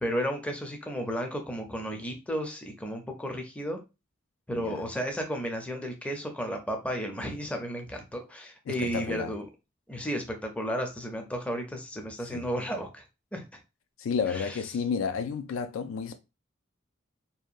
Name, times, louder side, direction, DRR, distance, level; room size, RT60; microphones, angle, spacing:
voice 1, 0.0-3.8 4.5-9.5 9.9-13.0 13.3-13.4 14.3-14.6, equal, 5° left, 0.4 m, -33 dB
voice 2, 8.7-9.3 12.3-12.5 14.0-16.2, left 6 dB, 75° left, 0.3 m, -31 dB
2.8 x 2.2 x 2.4 m
head